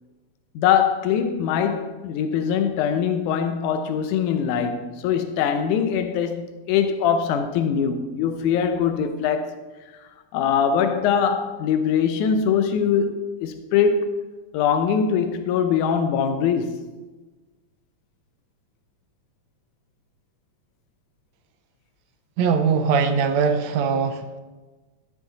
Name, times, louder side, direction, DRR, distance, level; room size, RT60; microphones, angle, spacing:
voice 1, 0.6-9.6 10.3-14.1 14.5-16.8, left 7 dB, 90° left, 2.1 m, -22 dB
voice 2, 22.4-24.4, right 5 dB, 75° right, 1.8 m, -21 dB
13.0 x 7.4 x 4.0 m
omnidirectional pair, 3.4 m